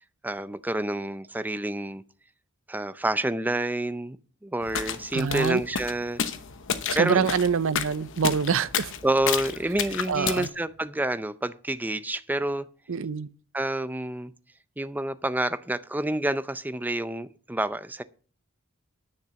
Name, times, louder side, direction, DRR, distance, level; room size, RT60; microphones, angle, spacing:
voice 1, 0.2-2.0 2.7-4.2 4.4-6.2 7.0-7.3 9.0-12.7 13.5-14.3 14.8-18.0, right 1 dB, 10° right, 0.5 m, -28 dB
sound 1, 4.6-10.5, left 7 dB, 60° left, 1.0 m, -32 dB
voice 2, 5.1-5.6 6.9-8.9 10.1-10.5 12.9-13.3, right 6 dB, 65° right, 0.6 m, -25 dB
10.5 x 6.6 x 6.9 m
head